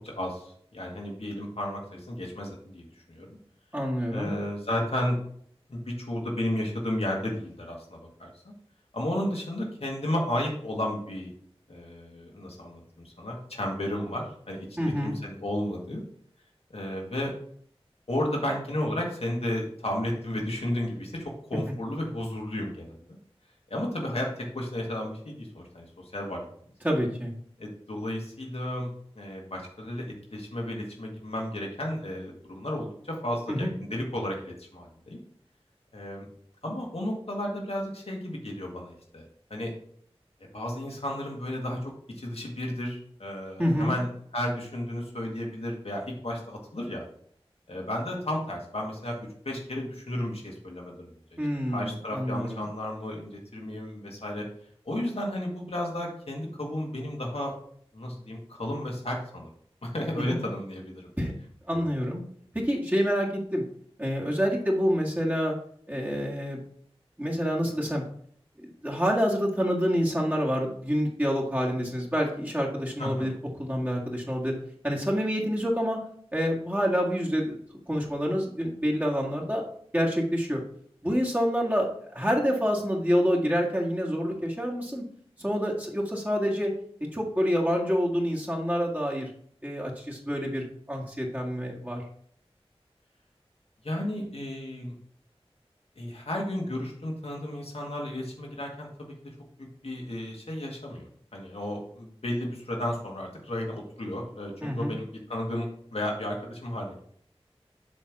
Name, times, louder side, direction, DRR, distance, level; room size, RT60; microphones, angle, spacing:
voice 1, 0.0-3.4 4.1-5.2 5.7-8.5 8.9-11.3 11.7-16.0 16.7-17.3 18.1-23.0 23.7-26.4 27.6-35.2 35.9-36.3 36.6-39.3 39.5-39.7 40.5-44.1 44.3-47.0 47.7-49.2 49.4-51.4 51.7-54.4 54.9-57.5 57.9-59.5 59.8-61.1 61.7-61.9 73.0-73.3 93.8-94.9 96.0-99.1 99.6-101.1 101.3-107.0, left 1 dB, 75° left, 0 dB, 1.9 m, -33 dB
voice 2, 3.7-4.4 14.8-15.1 26.8-27.3 33.5-33.7 43.6-44.0 51.4-52.7 60.2-60.4 61.2-61.4 61.7-62.2 62.5-63.6 64.0-65.5 65.9-66.6 67.2-68.0 68.6-73.3 73.6-74.5 74.8-76.0 76.3-77.6 77.9-79.6 79.9-80.6 81.0-85.0 85.4-86.7 87.1-89.3 89.6-92.0 104.6-105.0, equal, 15° right, -3 dB, 1.7 m, -27 dB
7.1 x 3.4 x 5.9 m, 0.62 s
wide cardioid pair, 50°, 10 cm